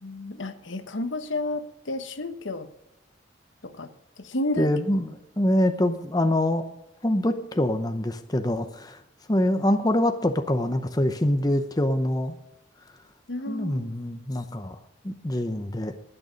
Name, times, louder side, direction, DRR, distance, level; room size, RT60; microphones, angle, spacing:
voice 1, 0.0-2.7 3.6-3.9 4.2-4.7 13.3-14.0, left 1 dB, 70° left, 10 dB, 1.1 m, -31 dB
voice 2, 4.6-6.6 7.0-9.0 9.3-12.3 13.5-14.8 15.0-15.9, left 1 dB, 20° left, 7 dB, 0.7 m, -25 dB
19.5 x 6.6 x 5.1 m, 0.88 s
head